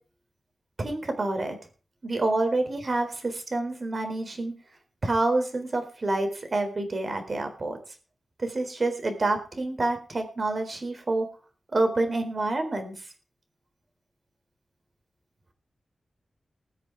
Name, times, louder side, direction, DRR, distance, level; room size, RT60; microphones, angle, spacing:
voice 1, 0.8-1.6 2.0-4.5 5.0-7.8 8.4-11.3 11.7-12.9, right 2 dB, 40° right, 6 dB, 4.0 m, -27 dB
21.0 x 7.4 x 5.0 m, 0.36 s
wide cardioid pair, 100°, 0 cm